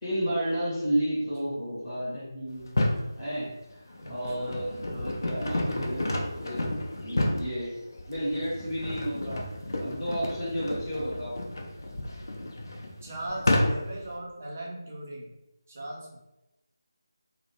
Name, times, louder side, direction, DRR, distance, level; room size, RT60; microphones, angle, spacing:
voice 1, 0.0-2.8 3.2-3.5 4.1-6.6 7.0-7.7 8.1-9.4 9.8-11.4, equal, 10° left, -13 dB, 0.7 m, -31 dB
sound 1, 2.6-3.1 3.7-14.1, left 1 dB, 55° left, 0.4 m, -31 dB
voice 2, 4.0-4.5 4.9-5.2 10.9-11.2 13.0-15.3 15.7-16.2, right 1 dB, 30° right, -2 dB, 0.4 m, -39 dB
2.3 x 2.0 x 2.8 m, 0.93 s
figure-of-eight pair, 160°, 2 cm